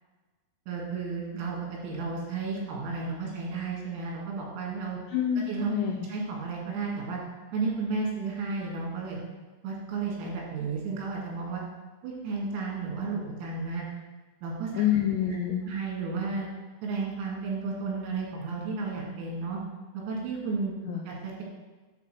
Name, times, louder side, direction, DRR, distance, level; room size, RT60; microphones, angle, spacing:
voice 1, 0.7-1.6 1.8-5.0 5.5-5.7 6.1-7.2 7.5-9.2 9.6-11.6 12.0-13.9 14.4-14.8 15.6-16.5 16.8-19.6 20.1-20.7 21.1-21.4, right 4 dB, 90° right, -2 dB, 4.8 m, -33 dB
voice 2, 5.1-6.1 14.8-15.6 20.9-21.0, left 9 dB, 80° left, -2 dB, 2.5 m, -27 dB
9.6 x 3.9 x 6.7 m, 1.3 s
omnidirectional pair, 6.0 m